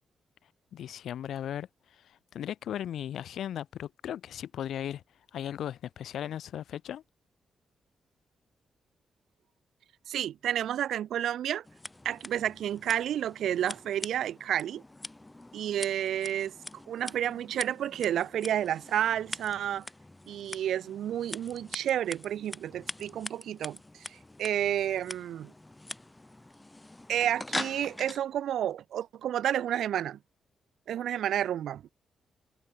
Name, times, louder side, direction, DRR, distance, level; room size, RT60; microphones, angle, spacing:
voice 1, 0.7-5.0 5.3-7.0, left 10 dB, 75° left, 5.2 m, -37 dB
voice 2, 10.1-11.6 12.0-14.8 15.5-16.5 16.9-19.9 20.3-23.8 24.1-25.5 27.1-30.2 30.9-31.9, right 10 dB, 85° right, 1.1 m, -30 dB
Scissors, 11.6-28.2, left 2 dB, 10° left, 3.1 m, -43 dB
wide cardioid pair, 170°, 0 cm